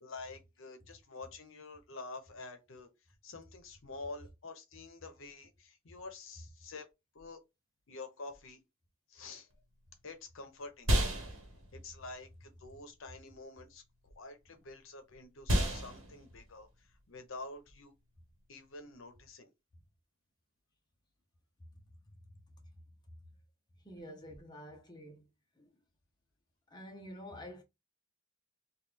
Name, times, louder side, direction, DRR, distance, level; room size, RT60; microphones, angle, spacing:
voice 1, 0.0-2.9 3.2-6.9 7.1-7.4 7.9-8.6 9.1-9.5 10.0-10.9 11.7-17.9 18.5-19.5, left 3 dB, 70° left, 0.8 m, -48 dB
sound 1, 9.5-19.1, equal, 75° right, 1.1 m, -36 dB
voice 2, 23.8-25.2 25.6-25.7 26.7-27.6, equal, 20° left, 0.8 m, -48 dB
3.1 x 2.4 x 3.5 m
head